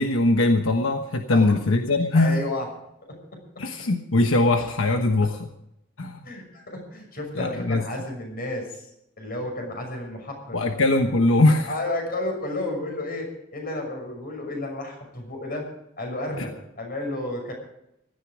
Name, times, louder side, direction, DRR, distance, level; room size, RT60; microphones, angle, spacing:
voice 1, 0.0-2.4 3.6-5.5 6.0-6.2 7.4-7.8 10.5-11.7, left 2 dB, 85° left, 5 dB, 1.2 m, -21 dB
voice 2, 2.1-2.7 3.3-3.9 6.2-8.9 9.2-10.6 11.7-15.7 16.0-17.5, left 2 dB, 50° left, 3 dB, 6.1 m, -32 dB
16.5 x 13.0 x 5.1 m, 0.80 s
head